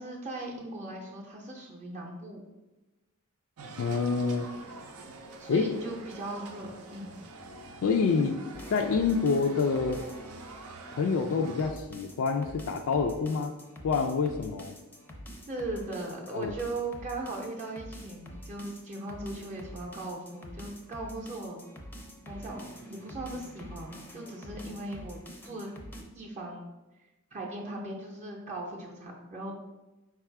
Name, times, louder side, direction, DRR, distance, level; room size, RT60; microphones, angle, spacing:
voice 1, 0.0-2.4 5.4-7.1 15.5-21.6 22.3-25.7 26.1-26.7 27.3-29.5, right 2 dB, 30° right, -2 dB, 0.6 m, -38 dB
sound 1, 3.6-11.7, right 3 dB, 75° right, 0.5 m, -46 dB
voice 2, 3.8-4.5 5.5-5.7 7.8-8.4 8.7-10.0 10.9-13.5 13.8-14.8 16.3-16.5, left 5 dB, 65° left, 4 dB, 0.3 m, -27 dB
sound 2, 8.5-26.0, equal, 10° left, 0.5 m, -46 dB
4.7 x 2.4 x 4.5 m, 1.1 s
head